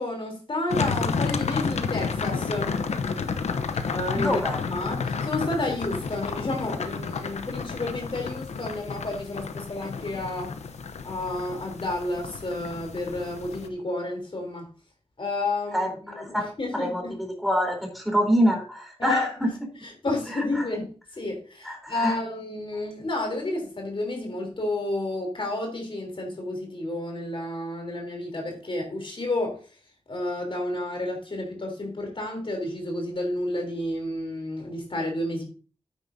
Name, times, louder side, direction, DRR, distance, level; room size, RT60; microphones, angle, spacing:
voice 1, 0.0-2.8 3.9-4.4 4.7-10.6 11.0-14.7 15.2-17.2 19.0-19.5 19.8-29.6 30.1-35.4, left 2 dB, 55° left, 3.5 m, -31 dB
sound 1, 0.7-13.7, left 5 dB, 90° left, 0.8 m, -31 dB
voice 2, 4.1-4.6 15.7-15.9 16.2-17.0 17.4-19.5 21.7-22.1, equal, ahead, 3.8 m, -25 dB
9.5 x 8.9 x 2.7 m
cardioid pair, 55°, 11 cm